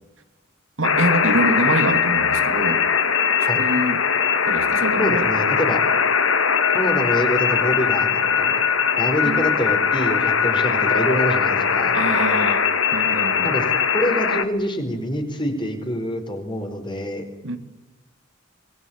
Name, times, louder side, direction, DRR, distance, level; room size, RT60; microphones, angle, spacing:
sound 1, 0.8-14.5, left 6 dB, 85° left, 2.1 m, -20 dB
voice 1, 0.8-2.8 3.5-4.1 4.5-5.3 9.2-9.5 11.9-13.5 17.4-17.6, right 1 dB, 75° right, 7 dB, 2.8 m, -25 dB
voice 2, 5.0-5.8 6.7-12.0 13.4-13.6 13.9-17.2, equal, 25° left, 6 dB, 4.7 m, -26 dB
26.0 x 21.5 x 8.9 m, 0.97 s
head